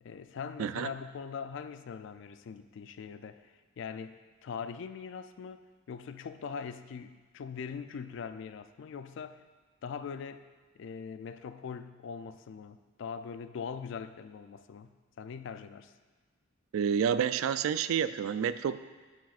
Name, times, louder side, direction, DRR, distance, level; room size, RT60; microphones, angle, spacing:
voice 1, 0.0-9.4 9.8-10.4 10.8-15.9, left 6 dB, 60° left, 11 dB, 0.3 m, -42 dB
voice 2, 0.6-0.9 16.7-18.8, right 8 dB, 80° right, 14 dB, 0.3 m, -29 dB
11.0 x 6.0 x 2.4 m, 1.3 s
head